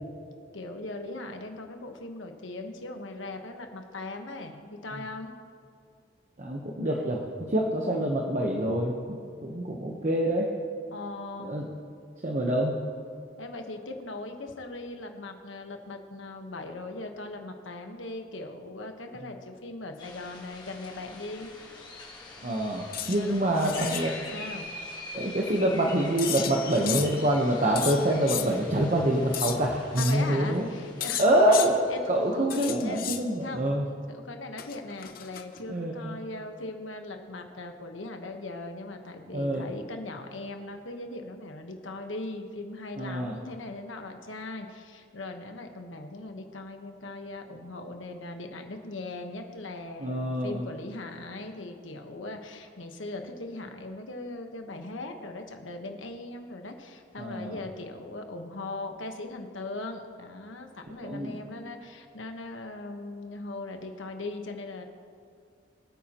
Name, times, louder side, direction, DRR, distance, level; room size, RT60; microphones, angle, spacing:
voice 1, 0.5-5.3 10.9-11.6 13.4-21.5 23.2-24.0 24.3-24.7 30.0-31.2 31.9-33.1 33.4-33.7 34.1-64.8, left 2 dB, 90° left, 4 dB, 1.2 m, -39 dB
voice 2, 6.4-10.5 11.4-11.7 12.2-12.8 19.1-19.3 22.4-24.1 25.1-30.7 31.2-33.9 35.7-36.1 39.3-39.7 43.0-43.4 50.0-50.6 57.2-57.6 61.0-61.4, right 1 dB, 40° right, 0 dB, 1.0 m, -26 dB
sound 1, 20.0-32.5, left 2 dB, 25° left, 1.7 m, -44 dB
sound 2, 22.9-23.2 23.5-24.1 26.2-27.2 27.8-28.5 29.3-29.6 30.0-30.2 31.0-31.7 32.5-33.2 34.6-35.6, left 10 dB, 50° left, 0.7 m, -33 dB
24.0 x 8.8 x 3.0 m, 2.2 s
head